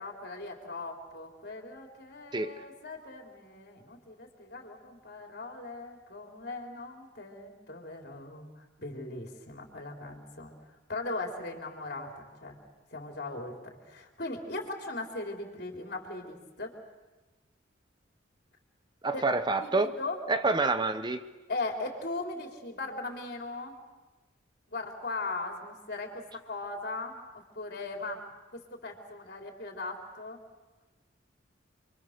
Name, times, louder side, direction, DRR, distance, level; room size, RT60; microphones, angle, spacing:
voice 1, 0.0-10.5 10.9-12.6 12.9-16.8 19.1-19.2 19.6-20.2 21.5-23.8 24.7-28.2 28.5-30.4, left 2 dB, 55° left, 2 dB, 3.9 m, -39 dB
voice 2, 19.0-19.9 20.3-21.3, right 3 dB, 25° right, 10 dB, 0.8 m, -27 dB
29.5 x 24.0 x 6.7 m, 1.2 s
head